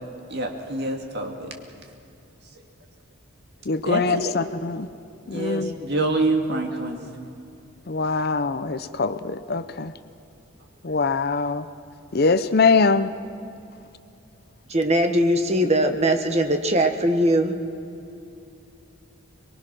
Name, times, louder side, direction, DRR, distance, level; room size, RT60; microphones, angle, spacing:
voice 1, 0.3-1.5 3.8-4.3 5.3-7.0, right 2 dB, 50° right, 3 dB, 2.3 m, -26 dB
voice 2, 3.7-4.9 5.3-5.7 7.9-9.9 10.8-11.6 12.1-13.1, left 4 dB, 45° left, 12 dB, 0.6 m, -23 dB
voice 3, 14.7-17.6, right 1 dB, 30° right, 6 dB, 1.4 m, -20 dB
23.5 x 22.0 x 6.2 m, 2.7 s
head